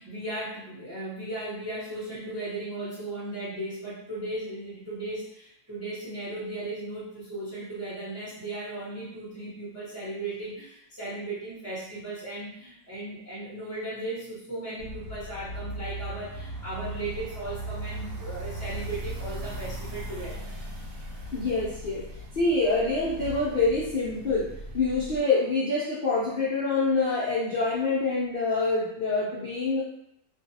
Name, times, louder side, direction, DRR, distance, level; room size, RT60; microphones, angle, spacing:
voice 1, 0.0-20.5, right 2 dB, 15° right, -9 dB, 0.6 m, -36 dB
sound 1, 14.8-25.2, right 1 dB, 85° right, 1.2 m, -38 dB
voice 2, 21.3-22.0 22.4-24.5 24.7-29.8, left 3 dB, 60° left, -7 dB, 0.5 m, -26 dB
2.5 x 2.3 x 2.7 m, 0.74 s
omnidirectional pair, 1.6 m